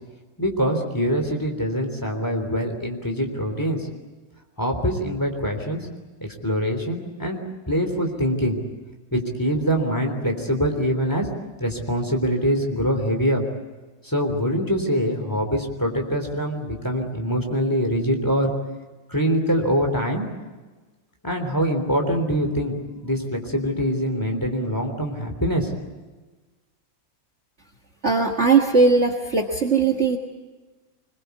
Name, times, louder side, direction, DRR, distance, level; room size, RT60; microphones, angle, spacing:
voice 1, 0.4-3.9 4.6-5.8 6.2-7.4 7.7-8.6 9.1-11.3 11.6-13.4 14.0-18.5 19.1-20.3 21.2-22.8 23.0-25.7, equal, 10° left, 3 dB, 3.4 m, -24 dB
voice 2, 28.0-30.2, right 4 dB, 40° right, 5 dB, 1.8 m, -19 dB
25.5 x 21.5 x 8.3 m, 1.3 s
omnidirectional pair, 2.0 m